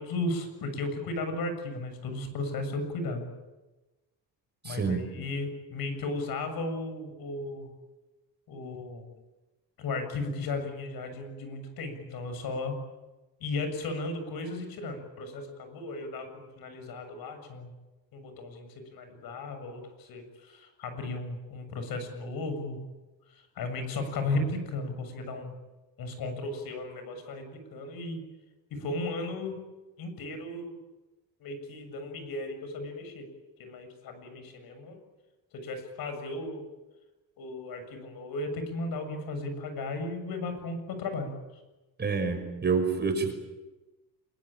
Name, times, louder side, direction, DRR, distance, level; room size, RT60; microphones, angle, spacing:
voice 1, 0.0-3.2 4.6-7.7 8.5-9.1 9.8-12.8 13.4-17.7 18.1-22.8 23.3-25.5 26.0-28.2 28.7-29.6 30.0-30.8 31.4-33.3 33.6-35.0 35.5-36.7 37.4-41.6, left 2 dB, 65° left, 8 dB, 7.3 m, -35 dB
voice 2, 4.6-5.1 42.0-43.3, right 5 dB, 25° right, 5 dB, 5.8 m, -28 dB
27.0 x 23.0 x 9.0 m, 1.1 s
cardioid pair, 130°, 39 cm